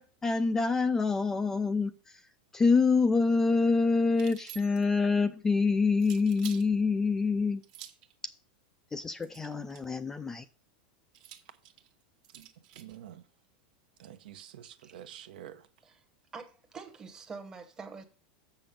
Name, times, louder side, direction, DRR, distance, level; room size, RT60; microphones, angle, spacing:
voice 1, 0.0-1.9 2.5-7.6 8.9-10.5, left 4 dB, 10° left, 0.3 m, -26 dB
sound 1, 4.1-5.0 6.0-6.7 7.6-8.1 9.2-10.0 11.1-13.0, right 11 dB, 55° right, 1.1 m, -49 dB
voice 2, 12.8-13.3 14.0-15.7, right 11 dB, 80° right, 0.9 m, -48 dB
voice 3, 16.3-18.0, right 4 dB, 15° right, 0.9 m, -45 dB
7.1 x 5.9 x 5.1 m
supercardioid pair, 165°, 5 cm